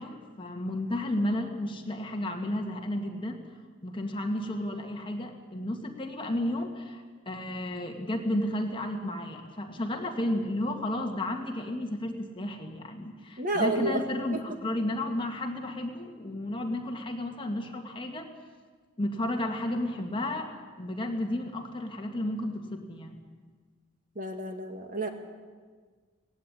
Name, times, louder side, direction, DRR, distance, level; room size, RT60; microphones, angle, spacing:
voice 1, 0.0-3.4 3.8-18.3 19.0-23.2, left 1 dB, 25° left, 3 dB, 1.9 m, -32 dB
voice 2, 13.4-14.0 14.3-14.4 24.2-25.1, right 2 dB, 45° right, 5 dB, 2.0 m, -30 dB
18.5 x 16.0 x 10.0 m, 1.5 s
head